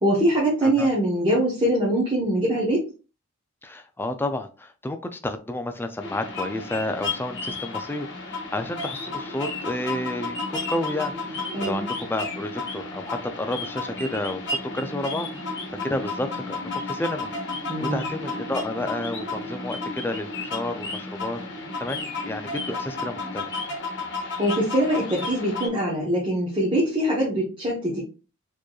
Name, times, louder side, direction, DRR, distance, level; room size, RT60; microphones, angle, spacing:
voice 1, 0.0-2.9 11.5-11.9 17.6-18.1 24.4-28.0, right 1 dB, 25° right, 1.0 m, -23 dB
voice 2, 3.6-15.5 15.8-21.4 21.8-23.6, left 1 dB, 10° left, 0.3 m, -31 dB
sound 1, 6.0-25.7, left 3 dB, 55° left, 1.1 m, -32 dB
4.5 x 3.0 x 2.3 m
head